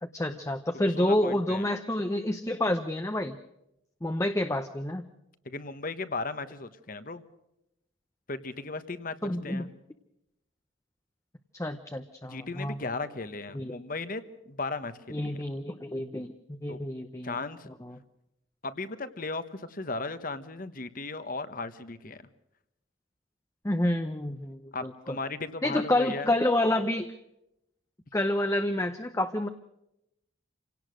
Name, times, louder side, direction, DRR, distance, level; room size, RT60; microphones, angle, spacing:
voice 1, 0.0-3.4 4.0-5.0 9.2-9.7 11.5-12.8 13.5-13.7 15.1-17.4 17.8-18.0 23.6-25.2 25.6-27.1 28.1-29.5, left 1 dB, 15° left, 7 dB, 0.8 m, -29 dB
voice 2, 0.8-1.7 5.4-7.2 8.3-9.7 12.2-15.4 16.7-16.8 17.2-17.7 18.6-22.2 24.7-26.4, left 3 dB, 45° left, 12 dB, 1.2 m, -36 dB
27.0 x 17.5 x 6.4 m, 0.85 s
head